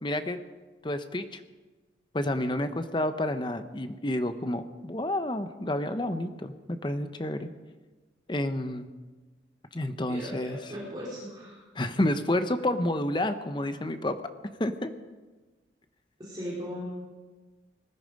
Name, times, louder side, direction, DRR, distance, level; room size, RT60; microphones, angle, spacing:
voice 1, 0.0-0.4 0.8-1.4 2.1-7.5 8.3-8.9 9.7-10.7 11.7-14.2 14.6-14.9, left 1 dB, 25° left, 9 dB, 0.8 m, -30 dB
voice 2, 10.1-11.6 16.2-16.9, equal, 25° right, -6 dB, 3.8 m, -38 dB
19.5 x 13.0 x 5.2 m, 1.3 s
head